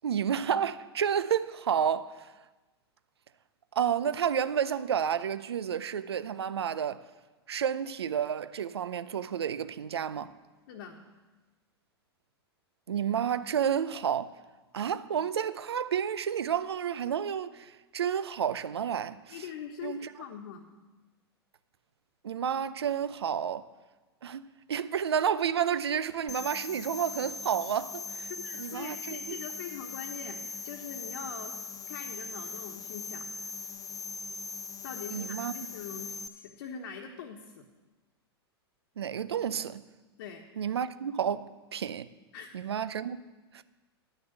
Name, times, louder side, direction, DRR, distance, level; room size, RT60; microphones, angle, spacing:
voice 1, 0.0-2.3 3.8-7.0 7.5-10.3 12.9-14.3 14.7-19.4 19.8-20.1 22.2-23.6 24.2-24.4 24.7-28.3 28.6-29.4 35.1-35.5 39.0-39.8 40.6-42.1 42.5-43.2 43.5-43.6, right 8 dB, 80° right, 0.6 m, -30 dB
voice 2, 10.7-11.1 19.3-20.7 28.3-31.5 31.9-33.3 34.8-37.7 40.2-40.4 42.3-42.5, left 7 dB, 60° left, 1.2 m, -43 dB
sound 1, 26.3-36.3, left 4 dB, 25° left, 0.6 m, -40 dB
10.5 x 6.7 x 7.8 m
hypercardioid pair, 100°, 13 cm